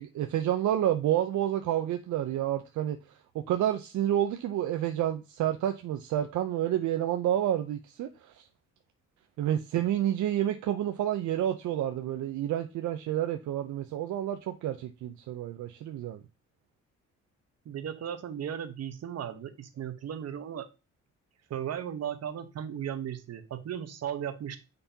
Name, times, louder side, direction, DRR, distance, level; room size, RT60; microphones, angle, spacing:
voice 1, 0.0-3.0 3.3-8.4 9.4-16.2, right 11 dB, 75° right, 0.6 m, -29 dB
voice 2, 17.6-20.7 21.5-24.6, right 9 dB, 55° right, 1.0 m, -36 dB
6.8 x 5.3 x 2.8 m
cardioid pair, 90°, 30 cm